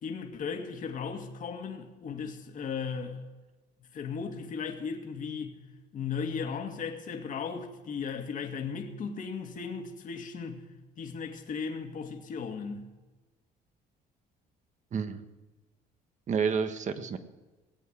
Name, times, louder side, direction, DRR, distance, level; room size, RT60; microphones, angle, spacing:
voice 1, 0.0-3.2 3.9-5.6 5.9-10.6 11.0-12.9, left 6 dB, 50° left, 2.2 m, -36 dB
voice 2, 14.9-15.2 16.3-17.2, right 6 dB, 45° right, 1.5 m, -29 dB
18.0 x 8.5 x 8.8 m
cardioid pair, 110°, 17 cm